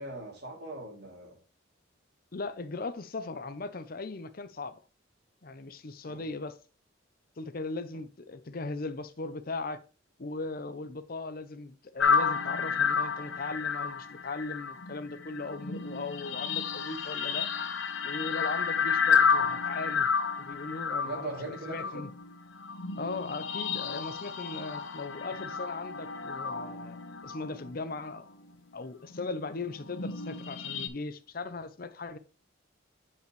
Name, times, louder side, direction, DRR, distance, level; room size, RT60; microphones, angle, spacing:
voice 1, 0.0-1.4 6.0-6.3 21.0-22.1, right 2 dB, 55° right, 2.9 m, -40 dB
voice 2, 2.3-4.8 5.4-6.6 7.4-9.8 10.2-17.5 18.0-20.1 20.4-22.1 23.0-28.3 28.7-32.2, left 3 dB, 50° left, 0.7 m, -38 dB
sound 1, 12.0-28.5 29.1-30.9, left 6 dB, 80° left, 1.0 m, -31 dB
8.6 x 5.5 x 3.2 m
head